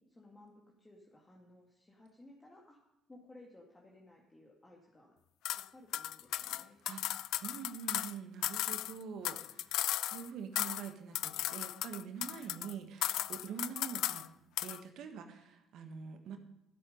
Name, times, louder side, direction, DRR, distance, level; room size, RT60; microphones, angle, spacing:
voice 1, 0.0-2.8 3.1-5.2 5.5-6.8, left 2 dB, 20° left, -2 dB, 2.2 m, -58 dB
sound 1, 5.4-5.6 5.9-8.1 8.4-10.3 10.6-10.9 11.1-12.7 13.0-14.3 14.6-14.8, left 14 dB, 70° left, 0.3 m, -36 dB
voice 2, 6.8-14.3 14.6-16.4, right 7 dB, 65° right, 6 dB, 1.4 m, -45 dB
13.5 x 7.7 x 5.3 m, 0.90 s
hypercardioid pair, 60°, 0 cm